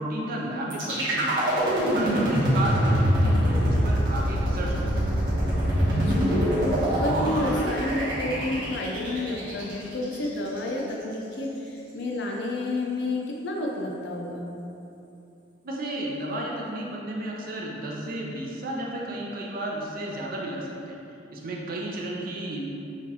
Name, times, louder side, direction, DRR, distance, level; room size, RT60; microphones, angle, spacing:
voice 1, 0.0-1.6 1.9-5.1 15.6-21.0 21.3-22.8, right 1 dB, 50° right, -2 dB, 0.5 m, -32 dB
sound 1, 0.7-10.7, equal, 70° right, 1.1 m, -24 dB
voice 2, 5.8-14.5, left 2 dB, 65° left, -1 dB, 0.5 m, -30 dB
5.7 x 2.4 x 2.8 m, 2.8 s
head